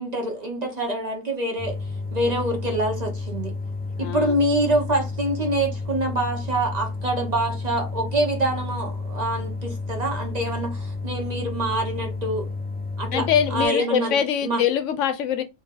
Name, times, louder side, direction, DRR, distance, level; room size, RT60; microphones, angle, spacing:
voice 1, 0.0-1.8 2.1-3.5 4.0-12.5 13.0-14.6, right 1 dB, 35° right, 1.0 m, -26 dB
sound 1, 1.6-13.7, left 3 dB, 10° left, 0.5 m, -31 dB
voice 2, 4.0-4.3 13.1-15.4, left 8 dB, 75° left, 0.9 m, -23 dB
3.1 x 2.7 x 3.7 m
omnidirectional pair, 1.3 m